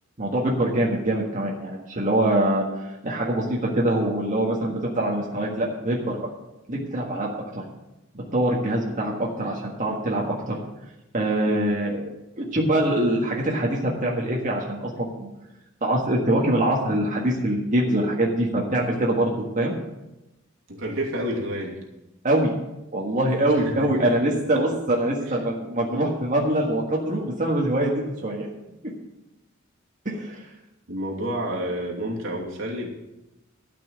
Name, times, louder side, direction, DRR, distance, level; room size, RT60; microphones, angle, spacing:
voice 1, 0.2-6.3 6.7-7.6 8.1-10.6 11.1-12.0 12.4-15.3 15.8-19.7 22.2-22.5 22.9-28.5 30.0-30.4, right 1 dB, 40° right, -3 dB, 1.6 m, -24 dB
voice 2, 20.7-21.8 23.6-23.8 24.0-24.1 30.9-32.9, equal, 70° right, -2 dB, 2.7 m, -29 dB
12.5 x 6.0 x 7.4 m, 0.97 s
head